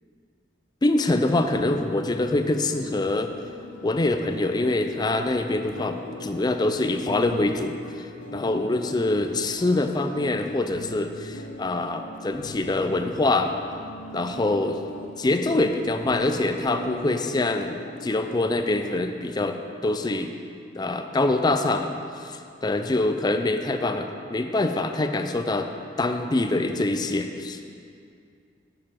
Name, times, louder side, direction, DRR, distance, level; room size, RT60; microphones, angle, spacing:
voice 1, 0.8-3.3 3.8-13.5 14.1-14.8 15.2-20.3 20.7-21.9 22.2-25.7 26.0-27.7, left 2 dB, 20° left, 7 dB, 0.4 m, -25 dB
sound 1, 1.3-19.4, left 1 dB, 90° left, 0.6 m, -41 dB
7.4 x 6.8 x 5.8 m, 2.4 s
head